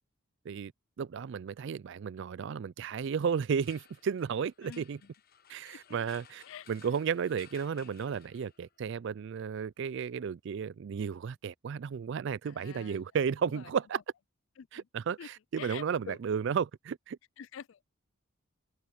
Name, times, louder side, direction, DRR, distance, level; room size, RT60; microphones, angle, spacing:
voice 1, 1.0-5.0 5.5-14.0 14.7-17.2, right 6 dB, 55° right, 0.3 m, -33 dB
sound 1, 3.1-8.8, left 8 dB, 45° left, 1.1 m, -58 dB
voice 2, 12.5-13.0 13.4-13.6 14.6-14.8 15.2-15.3 15.6-16.2 17.4-17.9, left 8 dB, 60° left, 0.4 m, -46 dB
head